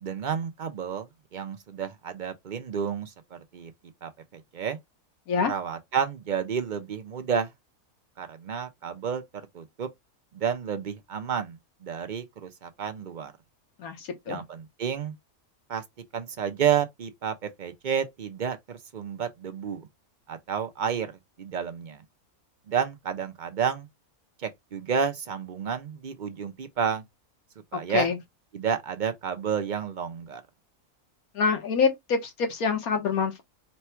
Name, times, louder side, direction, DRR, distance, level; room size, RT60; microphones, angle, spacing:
voice 1, 0.0-3.7 4.0-4.8 5.5-7.5 8.2-9.2 9.5-9.9 10.3-11.6 11.8-13.3 14.3-15.1 15.7-15.8 16.1-19.9 20.3-21.1 21.4-22.0 22.7-23.9 24.4-27.0 27.7-28.1 28.5-30.4, right 7 dB, 55° right, 0.5 m, -30 dB
voice 2, 13.8-14.4 27.7-28.2 31.3-33.4, left 5 dB, 80° left, 1.5 m, -26 dB
4.2 x 2.2 x 4.3 m
omnidirectional pair, 1.5 m